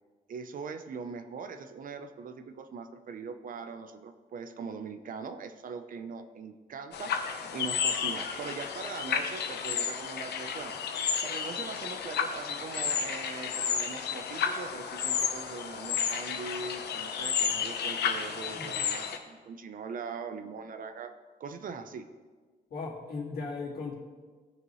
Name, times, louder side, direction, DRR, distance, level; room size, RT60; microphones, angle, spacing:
voice 1, 0.3-21.1 21.4-22.1, right 5 dB, 55° right, 8 dB, 0.7 m, -41 dB
sound 1, 6.9-19.2, left 7 dB, 80° left, 0.9 m, -32 dB
voice 2, 18.5-18.8 22.7-23.9, left 4 dB, 65° left, -3 dB, 2.2 m, -37 dB
17.0 x 6.6 x 3.1 m, 1.4 s
wide cardioid pair, 155°, 17 cm